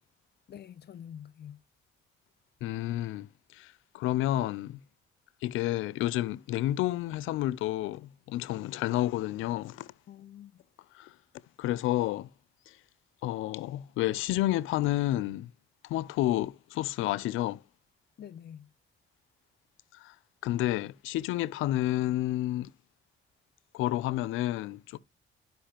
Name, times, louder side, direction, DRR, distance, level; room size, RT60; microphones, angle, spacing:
voice 1, 0.5-1.6 10.1-10.6 18.2-18.7, left 9 dB, 55° left, 0.7 m, -46 dB
voice 2, 2.6-3.7 3.9-4.8 5.4-9.9 11.0-11.1 11.6-12.3 13.2-15.5 15.9-17.6 20.0-20.1 20.4-22.7 23.7-25.0, left 15 dB, 85° left, 0.4 m, -30 dB
12.0 x 5.3 x 2.8 m
cardioid pair, 90°, 20 cm